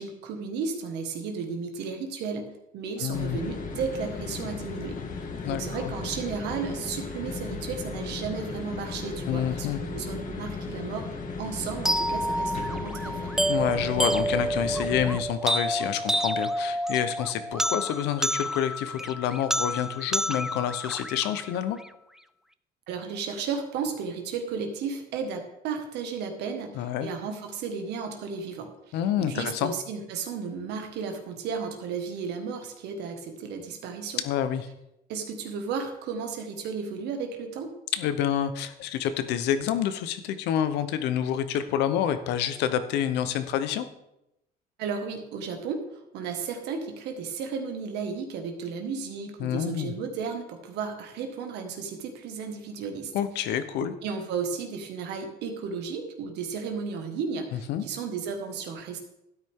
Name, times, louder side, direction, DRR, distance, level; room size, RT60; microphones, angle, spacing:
voice 1, 0.0-5.0 5.5-11.1 11.4-13.4 22.9-29.0 29.3-34.2 35.1-37.7 44.8-53.1 53.8-59.0, right 5 dB, 85° right, 5 dB, 1.7 m, -34 dB
voice 2, 3.0-3.4 5.4-5.9 9.3-9.8 13.5-21.8 26.8-27.1 28.9-29.7 34.2-34.7 37.9-43.8 49.4-49.9 53.1-53.9 57.7-57.9, left 10 dB, 90° left, 11 dB, 0.9 m, -28 dB
sound 1, 3.1-15.2, left 4 dB, 50° left, 1.6 m, -36 dB
sound 2, 11.8-21.9, equal, 5° right, 0.3 m, -29 dB
12.5 x 9.4 x 3.7 m, 0.86 s
cardioid pair, 110°, 17 cm